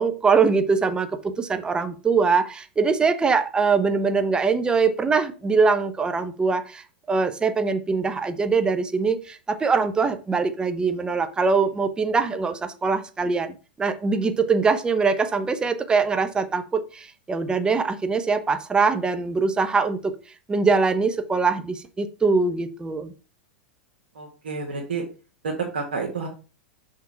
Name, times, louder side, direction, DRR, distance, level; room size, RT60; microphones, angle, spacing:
voice 1, 0.0-20.1 20.5-23.1, right 4 dB, 15° right, 0.9 m, -23 dB
voice 2, 24.1-25.0 25.4-26.3, right 4 dB, 75° right, 1.7 m, -29 dB
5.9 x 3.7 x 5.6 m
hypercardioid pair, 100°, 6 cm